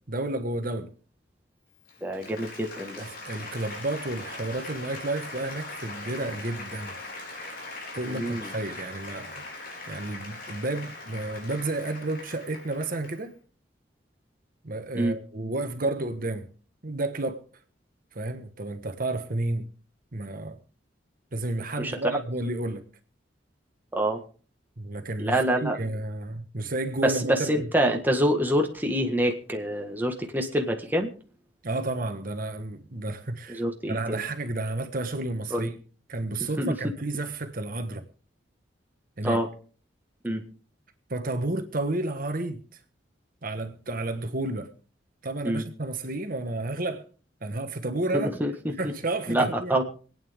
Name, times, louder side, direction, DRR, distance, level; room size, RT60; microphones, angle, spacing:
voice 1, 0.1-0.9 3.0-6.9 7.9-13.3 14.6-16.5 16.8-17.4 18.1-19.7 20.1-20.6 21.3-22.8 24.8-27.7 31.6-35.8 36.1-38.0 39.2-39.4 41.1-42.6 43.4-44.7 45.2-47.0 47.4-48.3 48.8-49.8, right 2 dB, 50° right, 1.4 m, -31 dB
Applause, 1.7-13.3, left 2 dB, 55° left, 4.2 m, -41 dB
voice 2, 2.0-3.0 8.1-8.5 14.9-15.2 21.8-21.9 23.9-24.2 25.2-25.8 27.0-31.1 33.5-34.2 35.5-35.7 36.6-36.8 39.2-39.5 40.2-40.4 45.4-45.6 48.1-48.5 49.3-49.8, right 1 dB, 10° right, 1.6 m, -26 dB
26.0 x 9.3 x 3.6 m
head